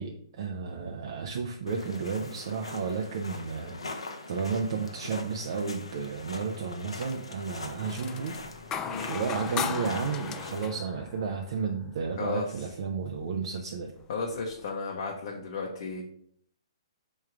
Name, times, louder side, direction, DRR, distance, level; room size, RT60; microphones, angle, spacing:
voice 1, 0.0-8.3 9.1-13.9, right 5 dB, 60° right, 2 dB, 0.5 m, -32 dB
sound 1, 1.7-10.7, left 3 dB, 90° left, 0.7 m, -43 dB
sound 2, 6.9-7.3 7.7-11.8 13.4-13.5 14.0-14.7, left 7 dB, 20° left, 0.3 m, -37 dB
voice 2, 12.2-12.7 14.1-16.0, left 4 dB, 60° left, -1 dB, 0.8 m, -34 dB
3.6 x 3.1 x 4.7 m, 0.66 s
hypercardioid pair, 135°, 3 cm